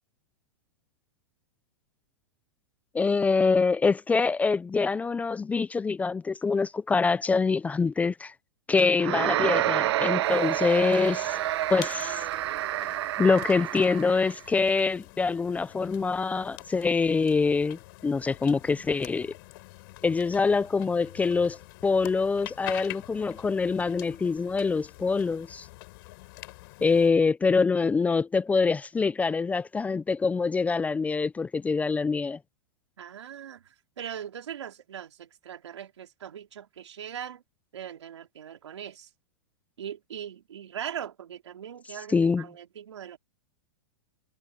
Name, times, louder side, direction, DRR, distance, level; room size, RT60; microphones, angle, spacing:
voice 1, 2.9-8.3 8.7-11.4 11.7-12.2 13.2-19.3 20.0-25.7 26.8-32.4 42.1-42.4, left 4 dB, 10° left, 0.6 m, -25 dB
sound 1, 9.0-14.4, right 14 dB, 70° right, 0.4 m, -28 dB
sound 2, 10.2-27.1, left 23 dB, 55° left, 7.1 m, -46 dB
voice 2, 33.0-37.4 37.7-39.1 39.8-43.2, right 9 dB, 85° right, 3.7 m, -40 dB
hypercardioid pair, 135°, 14 cm